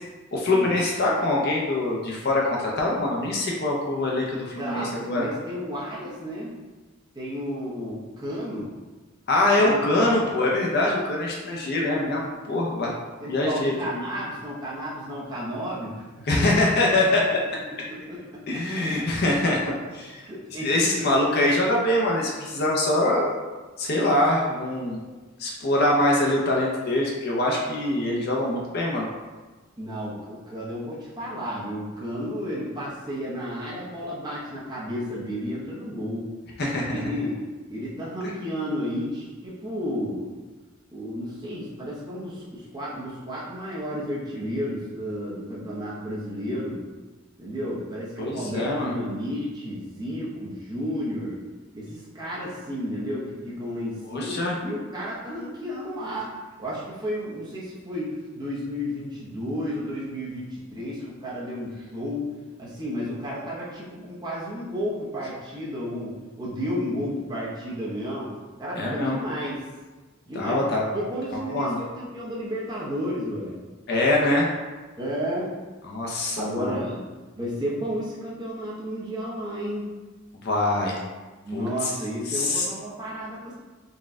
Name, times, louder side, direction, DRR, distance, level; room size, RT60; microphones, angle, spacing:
voice 1, 0.3-5.3 9.3-12.9 13.3-13.7 16.2-17.9 18.5-20.2 20.5-23.3 23.8-25.0 25.4-29.1 36.6-37.0 48.2-48.9 54.0-54.6 68.8-69.2 70.3-70.9 71.3-71.8 73.9-74.5 75.9-76.8 80.4-81.0 81.5-81.9 82.3-82.7, left 2 dB, 50° left, -2 dB, 0.5 m, -24 dB
voice 2, 4.6-6.5 7.1-8.7 9.6-10.2 13.2-16.0 17.9-18.6 20.2-21.1 29.8-36.3 36.9-40.3 40.9-46.8 47.4-51.4 51.7-62.3 62.6-69.5 70.3-70.6 70.9-73.6 75.0-75.5 76.4-77.1 77.3-79.9 81.4-83.5, equal, 20° right, -8 dB, 0.7 m, -32 dB
4.1 x 2.2 x 3.5 m, 1.3 s
head